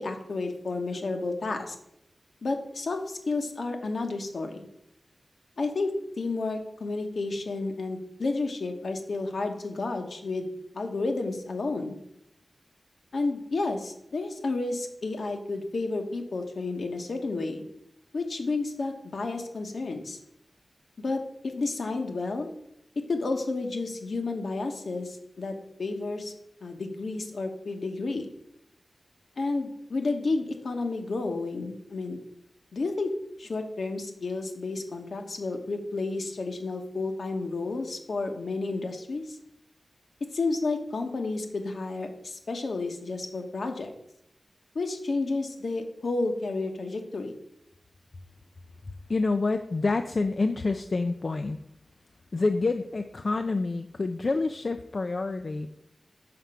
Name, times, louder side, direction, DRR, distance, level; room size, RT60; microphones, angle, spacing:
voice 1, 0.0-1.8 2.4-4.7 5.6-5.9 6.2-10.5 10.7-12.0 13.1-17.7 18.1-20.2 21.0-22.5 23.1-26.3 26.6-28.3 29.4-32.2 32.7-33.1 33.4-39.4 40.3-43.9 44.7-47.3, left 3 dB, 70° left, 4 dB, 1.1 m, -31 dB
voice 2, 49.1-51.6 52.3-55.7, left 3 dB, 50° left, 7 dB, 0.4 m, -27 dB
5.8 x 4.9 x 5.6 m, 0.77 s
wide cardioid pair, 90°, 0 cm